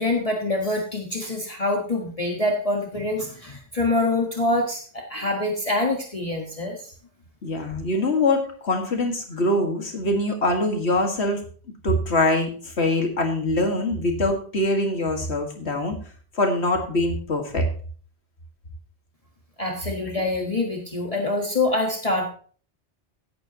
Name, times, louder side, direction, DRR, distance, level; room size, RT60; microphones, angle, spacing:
voice 1, 0.0-6.9 19.6-22.3, left 2 dB, 35° left, 0 dB, 1.6 m, -25 dB
voice 2, 7.4-11.4 11.8-15.9 16.4-17.7, left 2 dB, 75° left, 3 dB, 2.3 m, -23 dB
16.5 x 8.6 x 3.0 m, 0.42 s
omnidirectional pair, 1.1 m